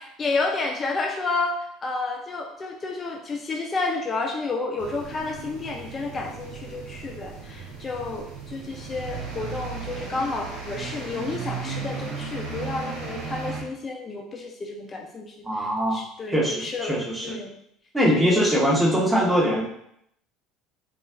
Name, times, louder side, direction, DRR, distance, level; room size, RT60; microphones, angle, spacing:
voice 1, 0.0-17.6 18.1-18.4, left 3 dB, 35° left, 1 dB, 0.4 m, -31 dB
sound 1, 4.8-13.6, right 5 dB, 65° right, 1.0 m, -36 dB
voice 2, 15.4-16.0 16.3-17.4 17.9-19.6, equal, 15° right, -2 dB, 1.0 m, -22 dB
3.9 x 2.3 x 2.4 m, 0.74 s
hypercardioid pair, 75°, 0 cm